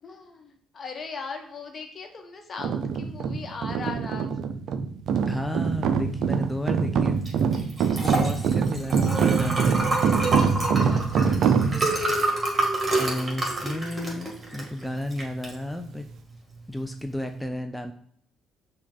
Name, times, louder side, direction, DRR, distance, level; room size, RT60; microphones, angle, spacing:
voice 1, 0.0-4.4 8.4-8.7 10.8-11.6, left 4 dB, 45° left, 4 dB, 1.0 m, -39 dB
sound 1, 2.6-12.1, right 6 dB, 65° right, 0.3 m, -24 dB
voice 2, 5.3-7.2 7.9-9.9 13.0-16.1 16.7-17.9, left 1 dB, ahead, 5 dB, 0.4 m, -32 dB
Liquid, 7.2-17.4, right 2 dB, 30° right, 1.6 m, -29 dB
5.8 x 2.3 x 3.9 m, 0.63 s
hypercardioid pair, 50°, 0 cm